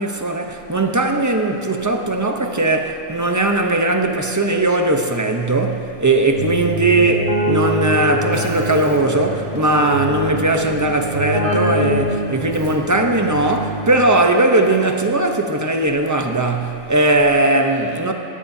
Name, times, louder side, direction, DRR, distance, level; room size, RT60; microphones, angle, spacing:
voice 1, 0.0-18.1, right 2 dB, 15° right, 0.8 m, -18 dB
Keyboard (musical), 6.3-14.2, right 1 dB, 80° right, 2.7 m, -24 dB
21.0 x 17.5 x 2.8 m
omnidirectional pair, 1.3 m